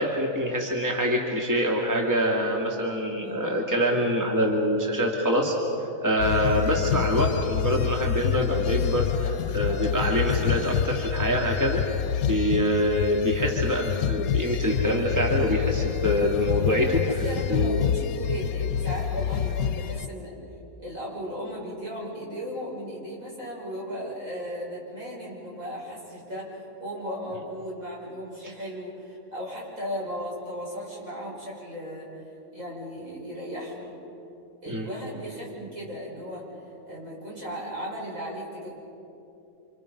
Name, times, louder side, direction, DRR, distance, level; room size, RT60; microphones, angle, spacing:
voice 1, 0.0-5.5 6.0-11.8 12.3-17.8 34.7-34.9, equal, 10° right, -1 dB, 2.4 m, -25 dB
voice 2, 3.2-3.7 17.0-20.4 20.8-32.2 32.5-34.0 34.6-36.5 36.9-38.8, equal, 65° right, -5 dB, 7.1 m, -36 dB
sound 1, 6.2-20.1, left 9 dB, 85° left, 1.2 m, -27 dB
29.0 x 27.0 x 5.4 m, 2.8 s
omnidirectional pair, 1.5 m